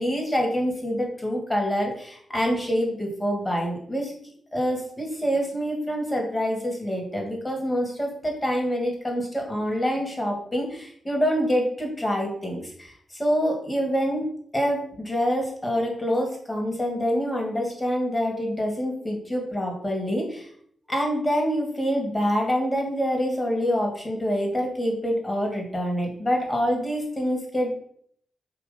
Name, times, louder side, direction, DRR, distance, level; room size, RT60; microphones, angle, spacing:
voice 1, 0.0-4.1 4.5-14.2 14.5-20.5 20.9-27.7, equal, 20° left, 1 dB, 2.6 m, -26 dB
7.0 x 3.0 x 5.5 m, 0.62 s
supercardioid pair, 55°, 0 cm